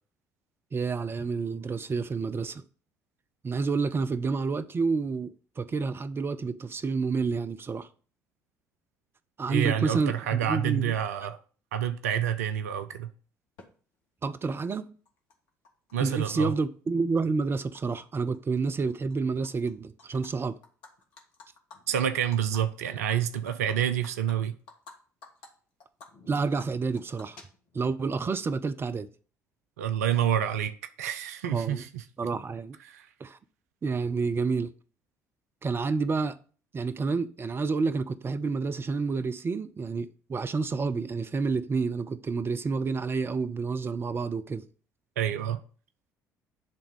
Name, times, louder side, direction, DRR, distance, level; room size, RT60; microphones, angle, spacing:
voice 1, 0.7-2.6 3.4-7.9 9.4-10.9 14.2-14.9 16.0-20.6 26.3-27.4 27.7-29.1 31.5-31.8 32.2-32.8 33.2-33.4 33.8-34.7 35.6-36.4 36.7-44.7, right 4 dB, 25° right, 0.6 m, -29 dB
voice 2, 9.5-11.4 11.7-13.1 15.9-16.5 21.9-24.5 29.8-32.0 32.9-33.1 45.2-45.6, right 9 dB, 70° right, 0.5 m, -28 dB
Animal, 13.6-13.7 14.7-14.8 15.1-15.9 16.3-18.0 18.3-18.6 18.9-19.7 20.0-20.3 20.6-24.9 25.2-25.5 25.8-27.9, left 4 dB, 60° left, 1.6 m, -51 dB
10.5 x 3.6 x 5.4 m
figure-of-eight pair, 50°, 9 cm